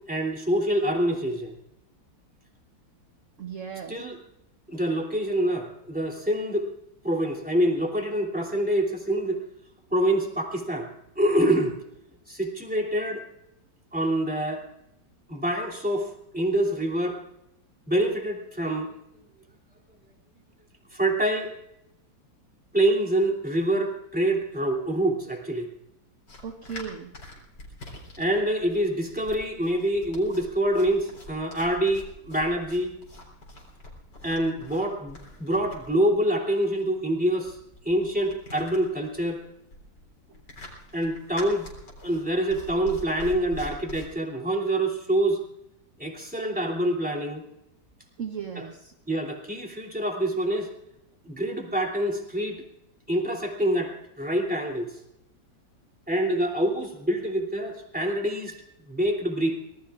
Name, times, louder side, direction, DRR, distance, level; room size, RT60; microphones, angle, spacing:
voice 1, 0.0-1.6 3.9-4.2 4.7-6.7 7.0-9.4 9.9-10.9 11.2-11.8 12.3-13.2 13.9-14.6 15.3-17.2 17.9-19.0 20.9-21.5 22.7-25.7 28.2-33.0 34.2-37.6 37.8-39.4 40.9-41.7 42.0-45.4 46.0-47.4 48.6-48.7 49.1-50.7 51.2-52.6 53.1-55.0 56.1-58.6 58.9-59.6, right 1 dB, 5° right, 0 dB, 2.8 m, -26 dB
voice 2, 3.4-4.0 26.4-27.1 40.3-40.4 48.2-48.9, right 7 dB, 50° right, 5 dB, 1.2 m, -36 dB
sound 1, 26.3-44.1, left 1 dB, 65° left, 4.6 m, -45 dB
24.5 x 19.5 x 2.5 m, 0.80 s
omnidirectional pair, 2.0 m